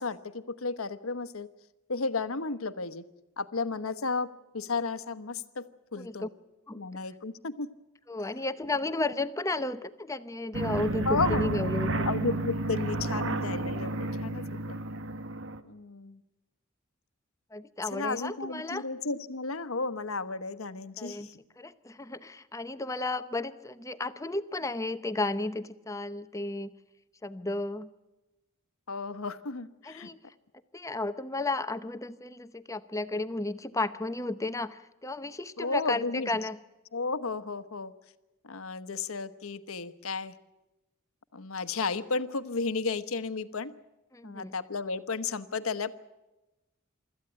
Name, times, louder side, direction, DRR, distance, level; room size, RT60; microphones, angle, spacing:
voice 1, 0.0-1.5 1.9-3.0 3.4-5.6 5.9-6.3 6.7-7.7 11.0-11.8 12.0-14.8 15.6-16.2 17.8-21.3 28.9-30.1 35.6-36.3 36.9-37.9 38.4-40.3 41.3-43.7 44.2-45.9, left 4 dB, 85° left, 13 dB, 1.1 m, -33 dB
voice 2, 6.0-6.3 6.7-6.8 8.1-12.1 17.5-18.9 21.0-21.3 21.6-26.7 27.2-27.9 29.8-30.2 30.7-36.6 44.1-44.5, left 2 dB, 15° left, 11 dB, 0.7 m, -33 dB
sound 1, 10.5-15.6, right 2 dB, 60° right, 1.3 m, -31 dB
25.0 x 14.0 x 9.9 m, 1.0 s
head